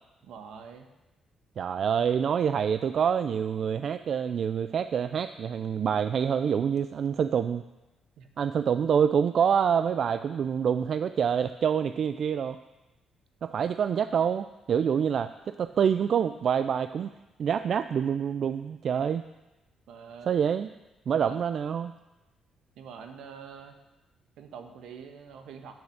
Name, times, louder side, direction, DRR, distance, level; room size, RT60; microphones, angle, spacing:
voice 1, 0.2-0.9 8.2-8.3 19.9-20.3 21.1-21.4 22.8-23.8 24.4-25.7, right 6 dB, 80° right, 6 dB, 1.1 m, -45 dB
voice 2, 1.6-7.6 8.4-12.6 13.4-17.1 17.4-19.2 20.3-20.7 21.1-21.9, right 7 dB, 60° right, 11 dB, 0.3 m, -26 dB
8.9 x 6.7 x 6.5 m, 1.0 s
cardioid pair, 90°, 0 cm